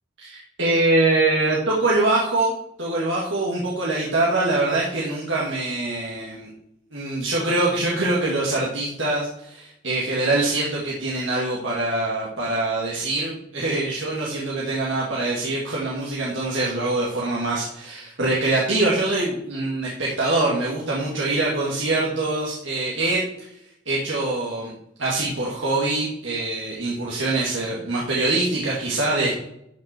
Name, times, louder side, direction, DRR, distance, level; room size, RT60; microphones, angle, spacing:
voice 1, 0.2-6.5 6.9-23.2 23.9-24.7 25.0-29.4, right 2 dB, 85° right, -5 dB, 2.3 m, -24 dB
13.0 x 5.7 x 4.5 m, 0.78 s
head